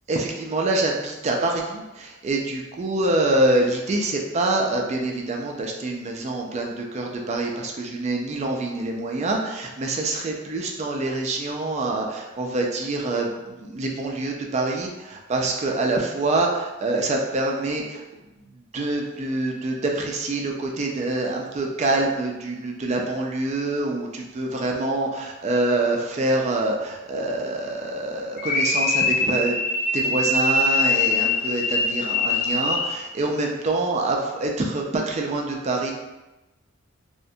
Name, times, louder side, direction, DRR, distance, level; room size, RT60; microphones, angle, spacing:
voice 1, 0.1-18.0 18.7-29.6 29.9-35.9, right 2 dB, 35° right, 0 dB, 0.3 m, -25 dB
sound 1, 28.4-33.1, left 2 dB, 45° left, 0.3 m, -23 dB
2.4 x 2.1 x 2.6 m, 1.1 s
head